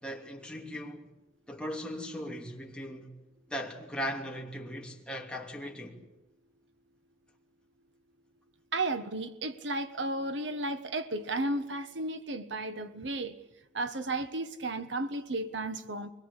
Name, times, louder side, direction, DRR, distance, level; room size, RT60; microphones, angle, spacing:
voice 1, 0.0-1.1 1.5-3.1 3.5-6.0, equal, 5° left, 2.8 m, -38 dB
voice 2, 8.7-13.3 13.7-16.1, right 2 dB, 70° right, 1.3 m, -33 dB
24.0 x 21.0 x 8.3 m
head